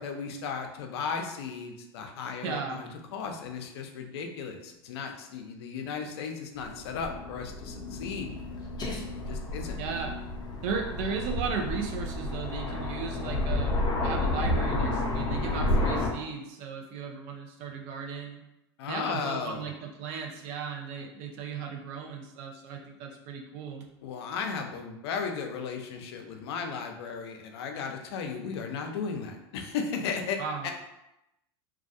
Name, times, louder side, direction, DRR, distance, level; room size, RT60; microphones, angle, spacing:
voice 1, 0.0-8.3 9.3-9.8 18.8-19.7 24.0-30.4 30.6-30.7, left 5 dB, 75° left, 4 dB, 0.4 m, -35 dB
voice 2, 2.4-2.8 9.8-10.1 10.6-18.4 18.8-23.9 30.4-30.7, right 5 dB, 55° right, 2 dB, 0.5 m, -36 dB
Aircraft, 6.6-16.1, left 2 dB, 30° left, 0.6 m, -31 dB
2.3 x 2.3 x 2.6 m, 0.88 s
hypercardioid pair, 100°, 14 cm